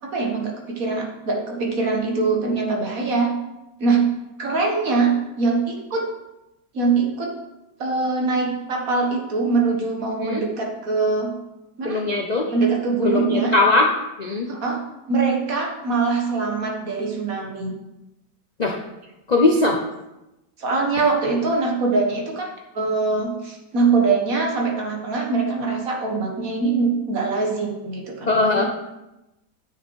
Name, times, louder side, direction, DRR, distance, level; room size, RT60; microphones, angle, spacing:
voice 1, 0.0-3.3 3.8-4.1 4.4-6.1 6.7-7.3 7.8-11.3 11.8-12.0 12.5-13.6 14.5-14.8 15.1-17.7 20.6-28.6, right 4 dB, 55° right, 0 dB, 1.8 m, -23 dB
voice 2, 11.8-12.5 13.0-13.9 14.2-14.5 18.6-18.8 19.3-19.8 28.3-28.6, left 3 dB, 60° left, 1 dB, 0.4 m, -19 dB
8.6 x 6.5 x 4.6 m, 0.96 s
omnidirectional pair, 1.9 m